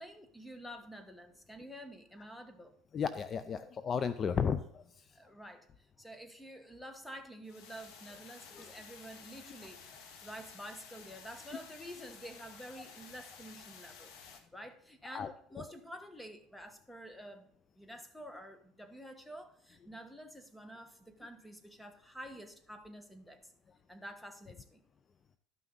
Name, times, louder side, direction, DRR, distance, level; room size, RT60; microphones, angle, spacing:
voice 1, 0.0-2.8 5.1-14.1 14.5-17.5 17.8-23.5 23.9-24.8, equal, 5° left, 1.2 m, -49 dB
voice 2, 2.9-4.8 8.6-8.7 15.1-15.3, left 6 dB, 35° left, 0.4 m, -33 dB
sound 1, 7.4-14.4, left 6 dB, 75° left, 1.7 m, -53 dB
12.5 x 5.8 x 3.9 m
supercardioid pair, 120°, 0 cm